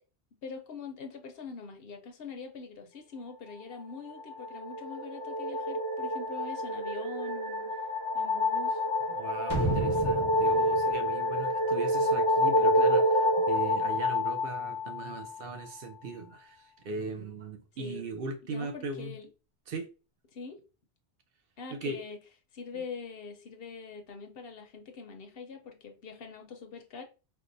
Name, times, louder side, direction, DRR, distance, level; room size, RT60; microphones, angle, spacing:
voice 1, 0.4-7.7 8.1-8.8 17.8-18.1 18.5-19.3 20.3-20.6 21.6-22.2 22.5-27.0, left 5 dB, 65° left, 0.8 m, -43 dB
sound 1, 4.0-15.5, left 1 dB, 50° left, 0.3 m, -28 dB
voice 2, 9.1-19.2 19.7-19.9 21.7-22.0 22.7-22.8, right 3 dB, 65° right, 0.8 m, -39 dB
sound 2, 9.5-12.3 12.6-12.7, right 1 dB, 25° right, 0.9 m, -34 dB
4.5 x 2.1 x 2.5 m
omnidirectional pair, 1.1 m